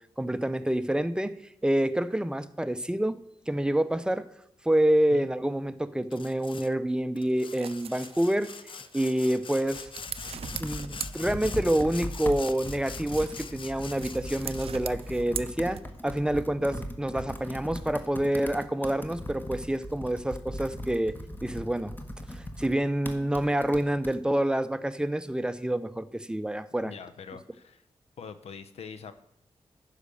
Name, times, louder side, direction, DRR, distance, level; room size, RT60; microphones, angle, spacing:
voice 1, 0.2-1.4 1.6-3.2 3.5-4.3 4.6-8.5 8.9-9.9 10.2-21.1 21.4-21.9 22.3-26.9, right 1 dB, 10° right, 13 dB, 0.6 m, -27 dB
Sawing, 6.1-6.7 7.2-14.9, left 6 dB, 55° left, 0.5 m, -44 dB
sound 1, 7.3-11.8 12.2-16.2, right 8 dB, 70° right, 0.4 m, -42 dB
Computer keyboard, 9.7-24.2, equal, 20° left, 1.2 m, -39 dB
voice 2, 26.8-27.9 28.2-29.1, left 6 dB, 85° left, 12 dB, 0.7 m, -43 dB
10.0 x 5.0 x 6.8 m, 0.75 s
cardioid pair, 65°, 10 cm